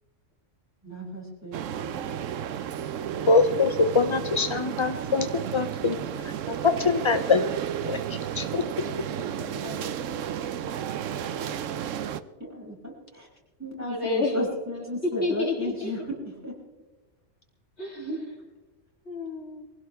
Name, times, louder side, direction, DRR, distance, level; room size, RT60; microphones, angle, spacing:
voice 1, 0.8-2.6 12.4-13.3 13.6-16.0 16.4-16.5 17.9-18.2, left 1 dB, 10° right, -5 dB, 6.1 m, -34 dB
sound 1, 1.5-12.2, right 9 dB, 90° right, 1.1 m, -33 dB
voice 2, 3.3-6.0 6.5-7.4 7.9-8.0 8.4-8.6, left 4 dB, 40° left, 9 dB, 0.4 m, -23 dB
voice 3, 8.8-10.4 13.8-14.3 15.0-15.9 17.8-18.1 19.0-19.6, left 3 dB, 60° left, -2 dB, 3.3 m, -31 dB
23.5 x 16.5 x 3.5 m, 1.2 s
omnidirectional pair, 1.3 m